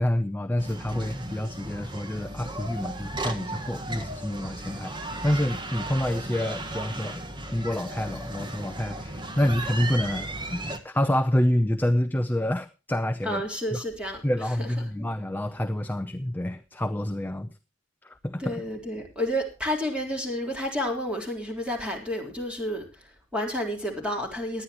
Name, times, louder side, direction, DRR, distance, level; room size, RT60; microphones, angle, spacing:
voice 1, 0.0-4.9 5.2-7.2 7.5-10.6 10.8-13.4 14.2-17.5 18.0-18.5, left 1 dB, 10° left, 9 dB, 0.6 m, -27 dB
sound 1, 0.6-10.8, right 1 dB, 25° right, 1.5 m, -35 dB
voice 2, 13.2-15.1 18.4-24.6, equal, 5° right, 2 dB, 3.7 m, -31 dB
18.5 x 11.5 x 3.0 m, 0.31 s
head